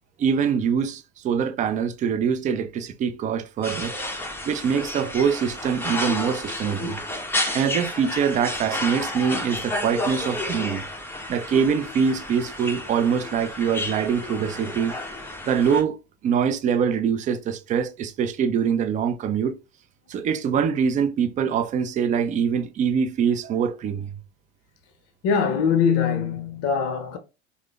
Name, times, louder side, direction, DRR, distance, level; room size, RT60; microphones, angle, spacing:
voice 1, 0.2-3.9 4.4-7.0 7.5-10.8 11.3-15.0 15.4-19.5 20.1-24.2, right 7 dB, 25° right, 0.3 m, -24 dB
sound 1, 3.6-15.8, left 1 dB, 5° left, 0.8 m, -31 dB
voice 2, 25.2-27.2, left 6 dB, 40° left, 0.7 m, -22 dB
4.7 x 2.0 x 2.3 m
hypercardioid pair, 85°, 36 cm